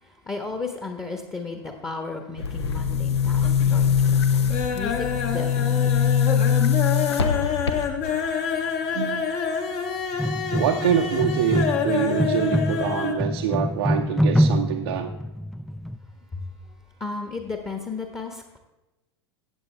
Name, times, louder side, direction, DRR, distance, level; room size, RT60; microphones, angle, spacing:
voice 1, 0.0-6.2 16.3-16.4 17.0-18.6, left 3 dB, 20° left, 4 dB, 1.3 m, -34 dB
Boom, 2.4-8.2, left 7 dB, 70° left, 0.9 m, -22 dB
sound 1, 2.5-3.1 3.4-3.9 4.2-13.2 13.5-13.6 13.9-14.0, left 7 dB, 45° left, 1.4 m, -28 dB
voice 2, 8.9-9.3 10.5-15.1, right 9 dB, 60° right, 3 dB, 0.7 m, -25 dB
sound 2, 10.2-16.0, equal, ahead, 0.3 m, -25 dB
14.5 x 8.4 x 3.4 m, 1.0 s
figure-of-eight pair, 85°, 14 cm